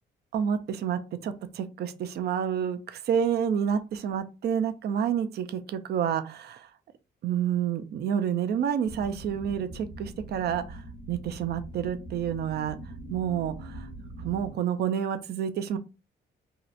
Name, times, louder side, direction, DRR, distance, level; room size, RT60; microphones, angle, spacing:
voice 1, 0.3-6.7 7.2-10.8 11.1-12.8 13.1-13.9 14.2-15.8, right 8 dB, 55° right, 9 dB, 0.4 m, -29 dB
sound 1, 8.8-14.5, right 1 dB, 90° left, 0.8 m, -42 dB
2.7 x 2.0 x 2.4 m, 0.29 s
cardioid pair, 90°, 20 cm